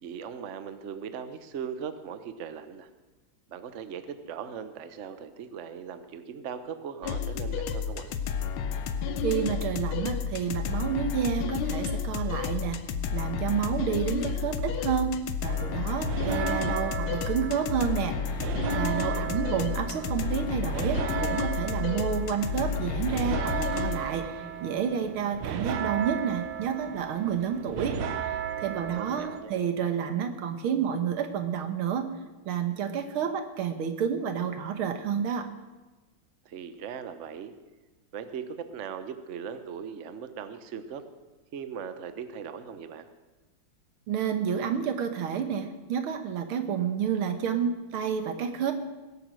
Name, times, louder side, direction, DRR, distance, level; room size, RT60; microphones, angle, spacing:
voice 1, 0.0-2.9 3.5-8.1 19.1-19.6 29.0-29.6 36.4-37.5 38.1-41.0 41.5-43.1, right 7 dB, 50° right, 10 dB, 1.0 m, -39 dB
sound 1, 7.0-24.0, left 6 dB, 90° left, 1.7 m, -31 dB
voice 2, 9.2-12.8 13.1-24.3 24.6-28.3 28.6-32.1 32.5-35.5 44.1-48.7, right 7 dB, 85° right, 8 dB, 2.1 m, -30 dB
sound 2, 15.4-29.4, right 8 dB, 70° right, 1.6 m, -35 dB
19.5 x 8.6 x 6.3 m, 1.2 s
omnidirectional pair, 2.3 m